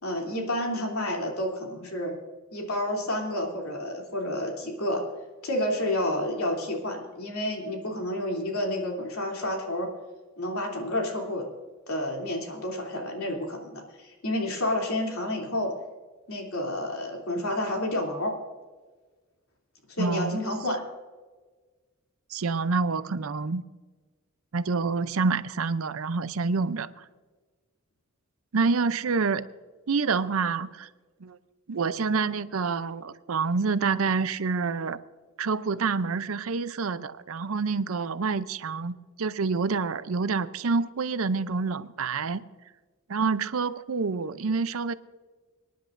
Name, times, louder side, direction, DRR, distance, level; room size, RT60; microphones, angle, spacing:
voice 1, 0.0-2.1 2.5-5.0 5.4-9.9 10.4-11.4 11.9-15.7 16.3-18.3 19.9-20.8, left 1 dB, 75° left, 0 dB, 3.0 m, -30 dB
voice 2, 20.0-20.4 22.3-23.6 24.5-27.0 28.5-29.5 29.9-30.9 31.2-31.4 31.7-35.0 35.4-42.4 43.1-44.9, right 4 dB, 70° right, 14 dB, 0.6 m, -27 dB
25.5 x 10.5 x 2.6 m, 1.3 s
head